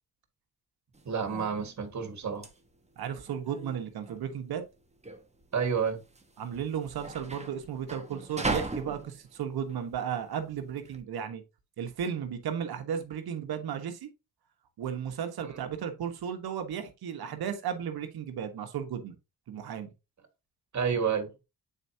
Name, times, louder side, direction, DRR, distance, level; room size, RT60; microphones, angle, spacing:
sound 1, 0.9-11.0, right 3 dB, 15° right, 1.3 m, -39 dB
voice 1, 1.1-2.5 5.5-6.0 15.4-15.6 20.7-21.3, right 6 dB, 50° right, 1.9 m, -30 dB
voice 2, 3.0-4.6 6.4-11.4 11.8-14.1 14.8-19.1 19.5-19.9, right 8 dB, 75° right, 1.4 m, -34 dB
8.0 x 4.5 x 2.8 m
cardioid pair, 70°, 37 cm